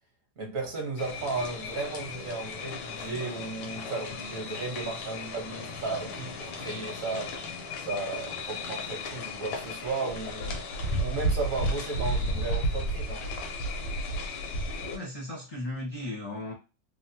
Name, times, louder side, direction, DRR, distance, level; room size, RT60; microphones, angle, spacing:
voice 1, 0.4-7.3 7.8-10.6 11.0-13.2, right 3 dB, 50° right, 1 dB, 1.2 m, -34 dB
sound 1, 1.0-15.0, equal, 85° left, 1.4 m, -34 dB
voice 2, 14.9-16.5, left 1 dB, 35° left, -5 dB, 0.6 m, -36 dB
3.4 x 2.0 x 2.7 m, 0.29 s
omnidirectional pair, 2.1 m